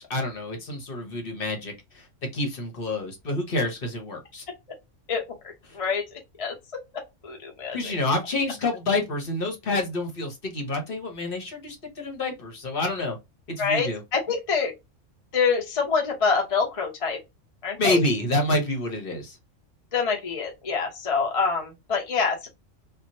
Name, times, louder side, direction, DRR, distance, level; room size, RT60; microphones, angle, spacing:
voice 1, 0.0-2.1 2.3-4.4 5.7-5.8 7.7-13.2 13.5-14.0 17.8-19.4, left 2 dB, 50° left, 1.1 m, -28 dB
voice 2, 7.2-7.9 13.6-14.7 15.3-17.2 17.6-18.0 19.9-22.5, left 5 dB, 35° left, 0.7 m, -25 dB
2.9 x 2.5 x 2.6 m
omnidirectional pair, 1.3 m